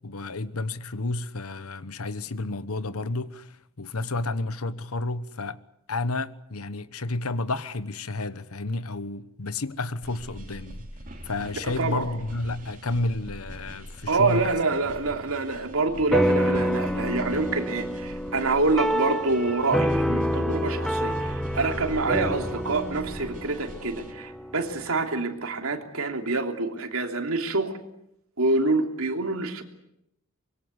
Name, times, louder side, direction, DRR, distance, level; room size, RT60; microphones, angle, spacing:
voice 1, 0.0-5.6 5.9-10.9 11.2-14.5, left 2 dB, 85° left, 1.2 m, -31 dB
sound 1, 10.0-24.1, right 1 dB, 35° right, 3.4 m, -43 dB
voice 2, 11.6-12.1 14.1-27.7 28.4-29.6, right 3 dB, 80° right, 3.1 m, -26 dB
sound 2, 16.1-24.8, equal, ahead, 1.1 m, -28 dB
25.0 x 23.0 x 8.2 m
head